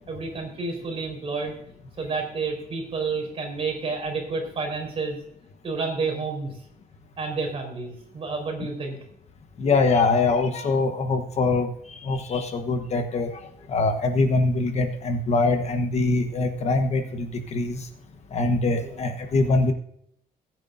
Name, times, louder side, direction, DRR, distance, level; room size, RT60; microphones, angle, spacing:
voice 1, 0.1-1.5 2.0-5.2 5.6-6.5 7.2-9.0 18.8-18.9, right 4 dB, 40° right, 1 dB, 4.2 m, -30 dB
voice 2, 9.6-11.7 12.1-13.3 13.7-17.3 17.5-17.8 18.3-19.7, left 3 dB, 45° left, 6 dB, 1.2 m, -23 dB
21.5 x 9.1 x 2.6 m, 0.72 s
cardioid pair, 170°, 16 cm